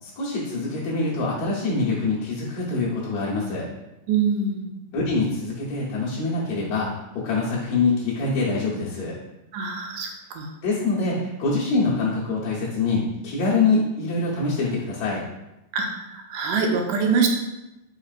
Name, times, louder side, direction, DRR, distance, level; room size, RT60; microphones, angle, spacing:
voice 1, 0.0-3.7 4.9-9.2 10.6-15.2, left 3 dB, 65° left, -8 dB, 1.8 m, -25 dB
voice 2, 4.1-4.9 9.5-10.5 15.7-17.3, right 5 dB, 80° right, 2 dB, 2.2 m, -24 dB
5.3 x 4.1 x 2.4 m, 0.94 s
omnidirectional pair, 3.6 m